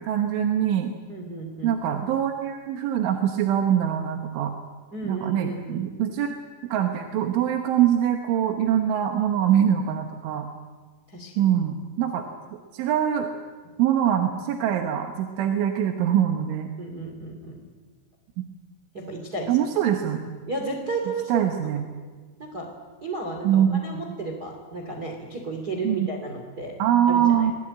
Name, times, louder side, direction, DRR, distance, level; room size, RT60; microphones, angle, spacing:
voice 1, 0.0-0.9 1.6-4.6 5.0-6.3 6.6-10.5 11.4-12.3 12.7-13.3 13.8-16.7 19.5-20.3 21.3-21.8 23.4-24.0 25.8-26.1 26.8-27.5, right 10 dB, 75° right, 3 dB, 3.6 m, -23 dB
voice 2, 1.1-1.7 4.9-5.9 11.1-11.3 16.8-17.6 18.9-19.5 20.5-21.3 21.6-21.8 22.4-22.7 23.0-26.7 27.1-27.5, right 2 dB, 25° right, 2 dB, 2.5 m, -33 dB
26.0 x 19.0 x 9.0 m, 1.4 s
omnidirectional pair, 5.8 m